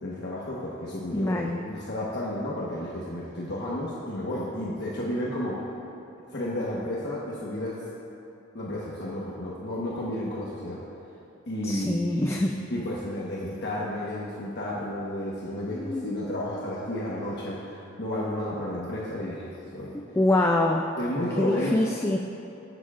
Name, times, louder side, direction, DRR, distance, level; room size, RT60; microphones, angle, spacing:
voice 1, 0.0-5.6 6.3-7.8 8.5-10.8 11.5-20.0 21.0-21.8, left 1 dB, 55° left, -6 dB, 1.2 m, -32 dB
voice 2, 1.1-1.6 11.6-12.6 15.7-16.1 19.9-20.9 21.4-22.2, left 1 dB, 10° left, 1 dB, 0.3 m, -25 dB
20.5 x 7.1 x 2.4 m, 2.8 s
head